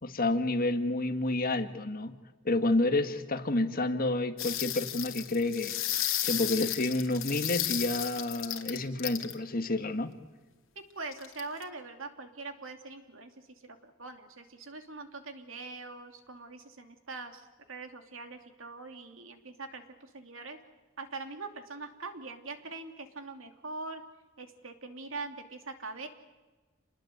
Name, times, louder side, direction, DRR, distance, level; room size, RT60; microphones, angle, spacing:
voice 1, 0.0-2.2 2.5-10.1, left 2 dB, 45° left, 8 dB, 1.8 m, -29 dB
sound 1, 4.4-9.3 11.1-11.6, left 13 dB, 85° left, 2.5 m, -33 dB
voice 2, 10.9-20.6 21.0-24.0 24.4-26.1, right 3 dB, 75° right, 6 dB, 2.9 m, -43 dB
28.5 x 20.5 x 8.1 m, 1.3 s
head